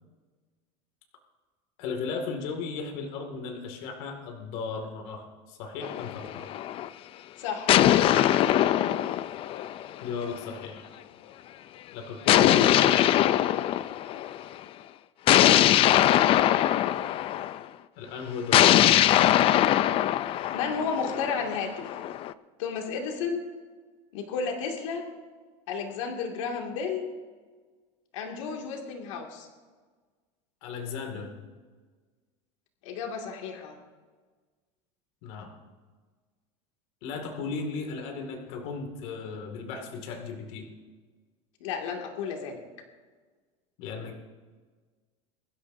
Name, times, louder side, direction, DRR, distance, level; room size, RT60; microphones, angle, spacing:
voice 1, 1.8-6.5 10.0-10.8 11.9-13.0 18.0-18.7 19.1-19.3 30.6-31.4 35.2-35.5 37.0-40.7 43.8-44.1, left 5 dB, 65° left, 3 dB, 2.2 m, -36 dB
sound 1, 5.8-6.9 7.7-10.3 12.3-14.4 15.3-17.6 18.5-22.3, left 12 dB, 35° left, 0.4 m, -22 dB
voice 2, 7.4-7.7 20.5-21.8 22.6-23.4 24.1-25.0 25.7-27.1 28.1-29.5 32.8-33.8 41.6-42.6, left 5 dB, 90° left, 1 dB, 2.3 m, -32 dB
23.0 x 12.5 x 2.7 m, 1.4 s
supercardioid pair, 145°, 16 cm